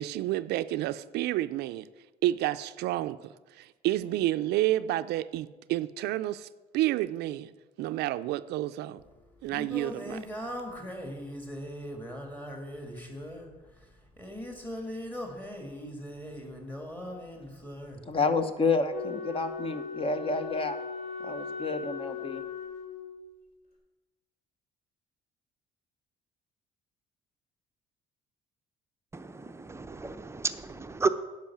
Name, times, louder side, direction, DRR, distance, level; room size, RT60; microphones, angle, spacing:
voice 1, 0.0-1.8 2.2-3.2 3.6-6.5 6.7-7.5 7.8-9.0 9.4-10.2, right 15 dB, 80° right, 13 dB, 0.4 m, -29 dB
Singing, 9.0-18.0, equal, 10° left, 1.8 m, -40 dB
voice 2, 18.1-20.8 21.2-22.4, left 3 dB, 35° left, 10 dB, 0.9 m, -29 dB
Wind instrument woodwind instrument, 18.9-23.3, left 6 dB, 55° left, 3.3 m, -38 dB
voice 3, 29.1-31.1, right 4 dB, 15° right, 10 dB, 0.6 m, -32 dB
10.5 x 5.4 x 7.1 m, 1.2 s
cardioid pair, 110°, 17 cm